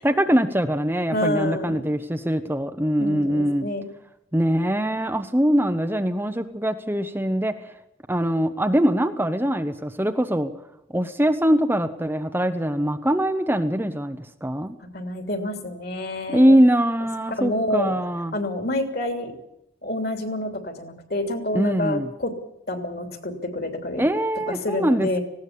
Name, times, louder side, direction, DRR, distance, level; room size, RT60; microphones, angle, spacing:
voice 1, 0.0-3.7 4.3-7.7 8.1-10.5 10.9-14.8 16.3-18.3 21.5-22.1 24.0-25.2, equal, 10° right, 7 dB, 0.8 m, -22 dB
voice 2, 1.1-1.8 3.0-3.8 14.9-16.6 17.3-17.9 18.3-19.3 19.8-22.3 22.7-24.0 24.5-25.2, left 1 dB, 50° left, 5 dB, 3.1 m, -28 dB
19.0 x 17.0 x 8.5 m, 0.84 s
head